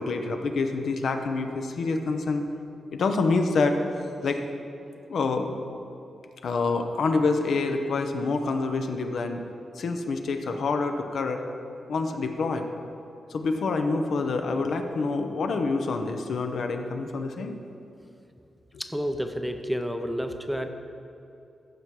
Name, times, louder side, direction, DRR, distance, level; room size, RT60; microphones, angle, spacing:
voice 1, 0.0-2.5 2.9-3.8 4.2-4.4 5.1-5.5 6.4-9.4 9.8-11.4 11.9-12.7 13.3-17.6, left 3 dB, 70° left, 5 dB, 0.7 m, -27 dB
voice 2, 18.8-20.7, equal, ahead, 6 dB, 0.5 m, -30 dB
14.5 x 5.9 x 4.8 m, 2.8 s
wide cardioid pair, 130°, 0 cm